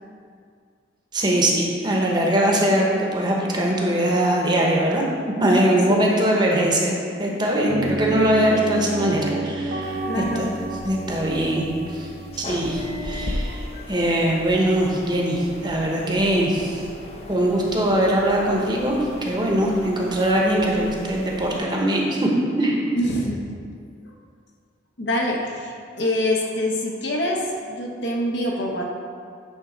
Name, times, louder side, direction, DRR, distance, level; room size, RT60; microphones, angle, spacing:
voice 1, 1.1-10.5 10.8-11.6 11.9-12.1 12.4-16.8 17.3-22.3 22.6-22.8, right 1 dB, 25° right, -2 dB, 1.0 m, -21 dB
voice 2, 5.9-6.2 10.0-10.6 23.0-23.4 25.0-28.8, left 1 dB, 70° left, -1 dB, 1.1 m, -25 dB
sound 1, 7.7-13.4, right 2 dB, 65° right, 1.0 m, -31 dB
sound 2, 9.8-21.6, left 1 dB, 35° left, 0.6 m, -37 dB
9.0 x 3.8 x 5.2 m, 2.2 s
head